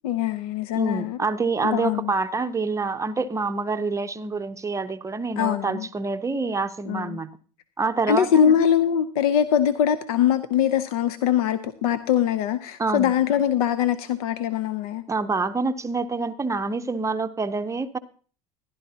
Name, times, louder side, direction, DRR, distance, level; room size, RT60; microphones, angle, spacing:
voice 1, 0.0-1.2 1.6-2.1 5.4-5.9 6.9-7.2 8.1-15.0, left 9 dB, 85° left, 12 dB, 0.7 m, -22 dB
voice 2, 0.8-7.3 7.8-8.5 12.8-13.1 15.1-18.0, right 4 dB, 15° right, 9 dB, 0.6 m, -27 dB
15.0 x 11.5 x 2.8 m, 0.40 s
supercardioid pair, 110°, 19 cm